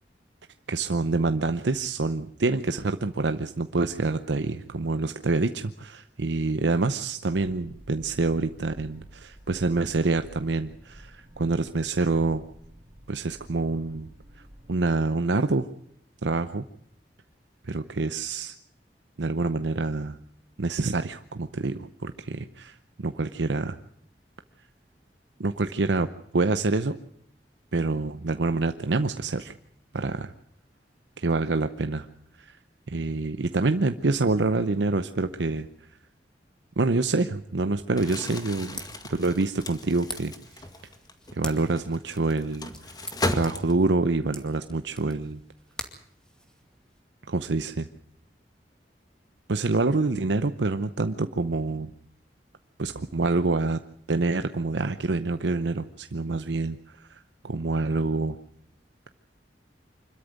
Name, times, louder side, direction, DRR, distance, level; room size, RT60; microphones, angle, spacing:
voice 1, 0.7-12.5 13.1-14.1 14.7-15.7 16.2-16.6 17.7-18.5 19.2-20.2 20.6-23.8 25.4-26.1 26.3-27.0 27.7-29.5 29.9-30.3 31.2-32.1 32.4-32.6 32.9-35.7 36.8-38.8 39.1-40.3 41.3-45.4 47.3-47.9 49.5-51.9 52.8-53.8 54.1-58.4, right 3 dB, 85° right, 9 dB, 0.8 m, -26 dB
sound 1, 7.3-14.8, right 1 dB, 30° right, 4.2 m, -50 dB
Crumpling crinkling, 37.9-44.1, left 2 dB, 25° left, 1.9 m, -35 dB
sound 2, 38.4-47.0, equal, 5° left, 2.4 m, -45 dB
25.5 x 13.5 x 9.4 m, 0.73 s
head